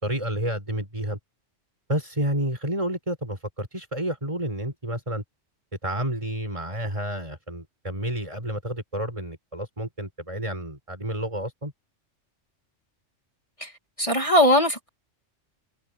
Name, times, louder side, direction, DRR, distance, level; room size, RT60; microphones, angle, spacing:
voice 1, 0.0-1.2 1.9-5.2 5.8-11.7, right 1 dB, 25° right, 6.8 m, -30 dB
voice 2, 14.0-14.9, left 1 dB, 25° left, 2.6 m, -20 dB
omnidirectional pair, 1.3 m